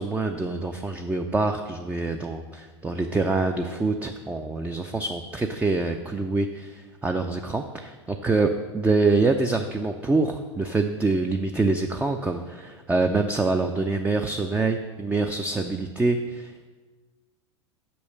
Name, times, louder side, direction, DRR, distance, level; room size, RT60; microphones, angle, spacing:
voice 1, 0.0-16.7, right 3 dB, 10° right, 5 dB, 0.4 m, -25 dB
6.1 x 5.4 x 6.6 m, 1.4 s
figure-of-eight pair, 85°, 15 cm